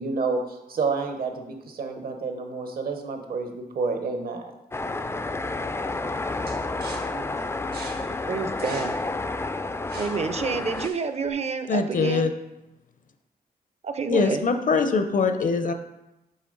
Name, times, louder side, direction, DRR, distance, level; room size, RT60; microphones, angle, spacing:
voice 1, 0.0-4.5, right 4 dB, 70° right, 5 dB, 0.9 m, -29 dB
sound 1, 4.7-10.9, left 2 dB, 15° left, 0.3 m, -30 dB
sound 2, 6.5-11.3, right 3 dB, 90° right, 1.1 m, -44 dB
voice 2, 6.9-7.2 8.3-8.9 10.0-12.2 13.8-14.4, right 5 dB, 40° right, 9 dB, 0.5 m, -29 dB
voice 3, 11.7-12.3 14.1-15.7, left 4 dB, 55° left, 8 dB, 0.6 m, -23 dB
8.3 x 3.2 x 3.9 m, 0.94 s
cardioid pair, 75°, 16 cm